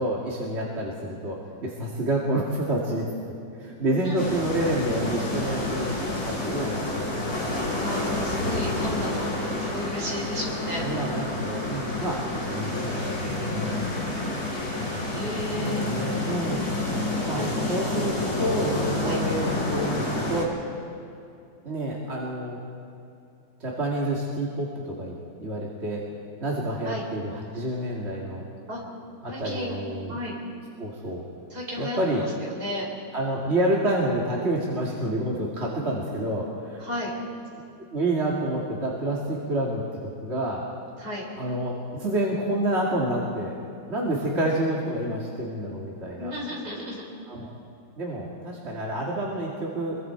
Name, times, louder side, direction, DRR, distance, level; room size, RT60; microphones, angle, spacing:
voice 1, 0.0-3.1 3.6-7.7 10.8-12.2 12.5-14.0 14.9-15.3 15.6-16.7 17.3-20.0 20.3-20.6 21.6-22.6 23.6-25.1 25.4-26.1 26.4-28.4 29.2-30.2 30.8-31.2 31.8-32.3 33.1-36.9 37.9-40.7 41.4-43.5 43.9-46.3 47.3-47.5 48.0-50.0, right 1 dB, 35° right, -4 dB, 2.6 m, -28 dB
voice 2, 3.9-4.5 7.8-9.3 9.6-10.9 15.1-15.9 17.3-18.4 19.0-19.2 26.8-27.0 28.7-28.8 29.3-29.7 30.1-30.3 31.5-32.8 36.8-37.1 41.0-41.3 46.2-47.0, left 1 dB, 55° right, -2 dB, 4.9 m, -34 dB
sound 1, 4.2-20.4, left 2 dB, 35° left, 4.2 m, -29 dB
26.5 x 22.5 x 4.7 m, 2.7 s
omnidirectional pair, 2.0 m